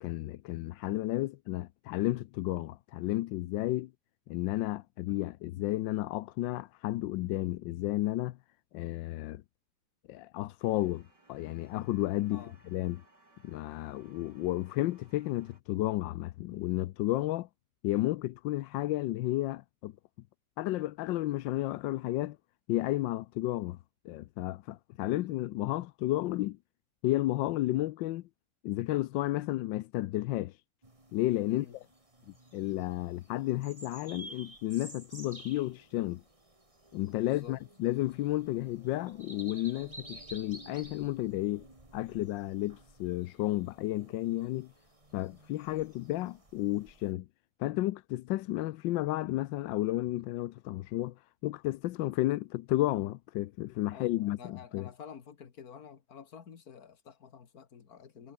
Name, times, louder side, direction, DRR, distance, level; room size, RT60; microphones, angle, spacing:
voice 1, 0.0-3.9 4.3-8.4 8.7-9.4 10.1-13.0 13.4-17.5 17.8-19.9 20.6-22.4 22.7-23.8 24.0-26.6 27.0-28.3 28.6-30.5 31.1-31.7 32.5-36.2 36.9-41.6 41.9-44.7 45.1-47.3 47.6-51.1 51.4-54.9, left 16 dB, 90° left, 1.3 m, -32 dB
sound 1, 10.6-15.6, right 2 dB, 65° right, 8.6 m, -64 dB
sound 2, 30.8-47.1, right 2 dB, 15° right, 3.0 m, -53 dB
voice 2, 37.2-37.6 53.9-58.3, left 7 dB, 55° left, 2.1 m, -49 dB
omnidirectional pair, 2.0 m